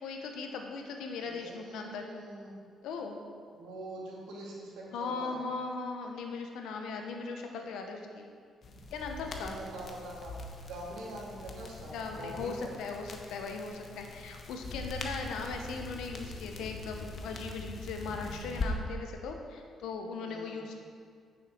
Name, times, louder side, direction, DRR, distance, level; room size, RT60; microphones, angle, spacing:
voice 1, 0.0-2.1 2.8-3.2 4.9-8.2 8.9-9.6 11.9-20.8, left 4 dB, 85° left, 3 dB, 1.1 m, -38 dB
voice 2, 1.2-2.6 3.5-5.4 9.2-10.4 10.7-12.7 20.2-20.7, right 1 dB, 90° right, -4 dB, 2.4 m, -44 dB
sound 1, 8.6-18.7, left 3 dB, 50° left, 1.1 m, -42 dB
9.5 x 7.0 x 4.5 m, 2.1 s
cardioid pair, 90°, 0 cm